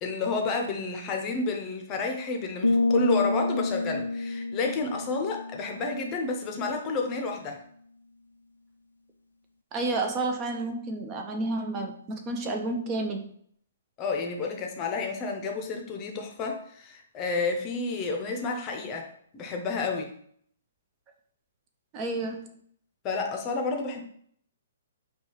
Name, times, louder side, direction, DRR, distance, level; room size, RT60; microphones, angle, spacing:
voice 1, 0.0-7.6 14.0-20.1 23.0-24.0, left 3 dB, 25° left, 3 dB, 0.6 m, -30 dB
sound 1, 2.6-6.3, left 2 dB, 85° left, 0.3 m, -28 dB
voice 2, 9.7-13.3 21.9-22.5, right 2 dB, 25° right, 3 dB, 0.5 m, -30 dB
5.3 x 2.3 x 3.0 m, 0.64 s
figure-of-eight pair, 120°, 0 cm